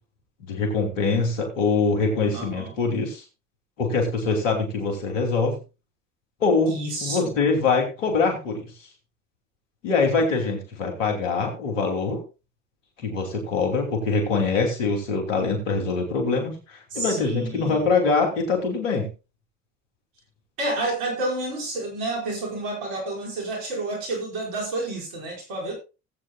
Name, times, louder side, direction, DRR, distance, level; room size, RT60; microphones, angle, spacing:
voice 1, 0.4-3.2 3.8-5.6 6.4-8.7 9.8-12.2 13.0-19.1, left 4 dB, 90° left, 3 dB, 2.9 m, -24 dB
voice 2, 2.3-2.8 6.6-7.3 16.9-17.9 20.6-25.7, right 2 dB, 75° right, 0 dB, 5.2 m, -30 dB
17.5 x 8.5 x 2.3 m, 0.29 s
hypercardioid pair, 60°, 37 cm